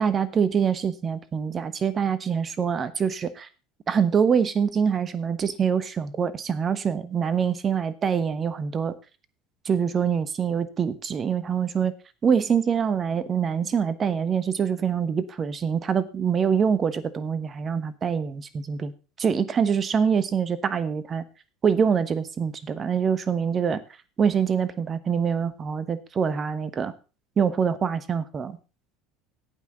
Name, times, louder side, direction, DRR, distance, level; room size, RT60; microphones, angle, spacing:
voice 1, 0.0-3.5 3.9-8.9 9.6-11.9 12.2-18.9 19.2-21.2 21.6-23.8 24.2-26.9 27.4-28.6, right 7 dB, 30° right, 15 dB, 1.1 m, -25 dB
17.0 x 5.9 x 3.9 m, 0.32 s
figure-of-eight pair, 70°, 0 cm